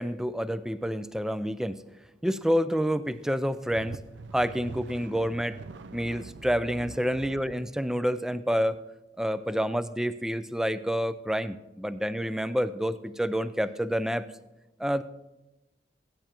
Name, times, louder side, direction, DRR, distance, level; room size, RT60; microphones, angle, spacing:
voice 1, 0.0-1.8 2.2-4.0 4.3-5.6 5.9-8.8 9.2-14.3 14.8-15.0, equal, 5° right, 13 dB, 0.3 m, -28 dB
sound 1, 3.3-7.6, right 4 dB, 75° right, 0.5 m, -44 dB
15.5 x 10.0 x 3.0 m, 1.0 s
head